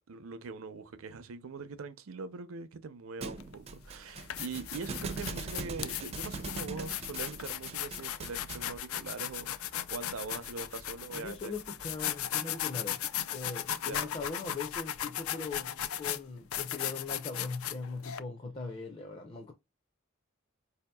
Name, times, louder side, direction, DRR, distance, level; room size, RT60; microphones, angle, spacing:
voice 1, 0.1-11.5 13.8-14.0, right 4 dB, 75° right, 0.6 m, -42 dB
Thump thud, 3.2-8.8, right 4 dB, 30° right, 0.4 m, -42 dB
sound 1, 3.4-3.5 4.1-18.2, left 11 dB, 80° left, 0.4 m, -37 dB
sound 2, 7.2-12.3, equal, 50° left, 0.9 m, -58 dB
voice 2, 11.1-13.0 13.3-15.7 16.0-19.5, left 4 dB, 30° left, 0.5 m, -40 dB
4.6 x 2.8 x 2.2 m
head